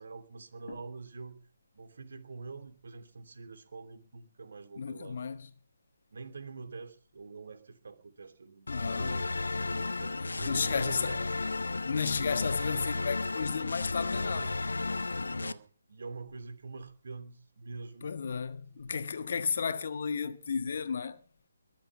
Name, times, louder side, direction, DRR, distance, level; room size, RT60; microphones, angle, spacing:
voice 1, 0.0-1.4 1.7-5.2 6.1-11.7 14.2-14.6 15.2-18.1 18.7-18.9, right 4 dB, 60° right, 2.9 m, -46 dB
voice 2, 4.8-5.5 8.7-9.2 10.5-11.2 11.8-14.5 18.0-21.2, left 6 dB, 55° left, 1.5 m, -33 dB
sound 1, 8.7-15.5, left 3 dB, 75° left, 1.0 m, -33 dB
22.0 x 7.5 x 7.2 m
figure-of-eight pair, 145°, 0 cm